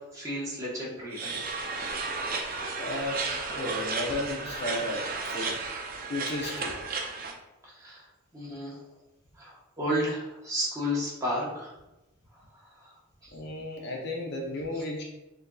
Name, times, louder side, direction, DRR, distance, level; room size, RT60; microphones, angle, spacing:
voice 1, 0.1-1.4 5.4-5.5 7.6-8.0 8.3-8.8 9.4-11.7 12.8-12.9 13.2-13.3, equal, 15° right, -6 dB, 1.1 m, -32 dB
sound 1, 1.1-7.3, right 4 dB, 40° right, 0.5 m, -33 dB
voice 2, 2.8-3.3 3.5-5.1 5.3-5.6 6.1-6.8 13.3-15.0, left 1 dB, 50° left, -1 dB, 0.6 m, -33 dB
6.4 x 2.7 x 2.3 m, 0.96 s
head